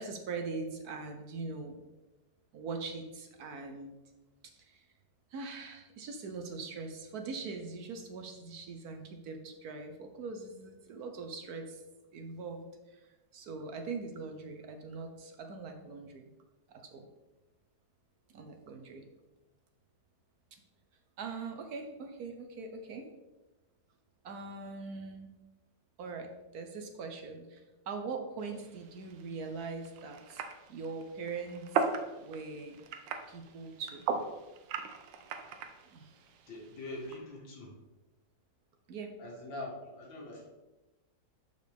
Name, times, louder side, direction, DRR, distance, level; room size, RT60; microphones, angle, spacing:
voice 1, 0.0-1.8 2.5-4.0 4.6-4.9 5.3-11.8 12.1-16.3 16.7-17.1 18.3-19.1 20.5-20.6 21.2-23.1 24.2-25.3 26.0-30.4 30.7-31.9 32.2-32.8 33.3-34.0 35.9-36.1 38.9-39.1, right 4 dB, 65° right, 5 dB, 1.1 m, -42 dB
sound 1, 28.4-37.2, right 5 dB, 80° right, 1.4 m, -39 dB
voice 2, 36.5-37.7 39.2-40.5, left 2 dB, 85° left, -2 dB, 2.3 m, -43 dB
6.8 x 6.6 x 3.4 m, 1.1 s
omnidirectional pair, 2.0 m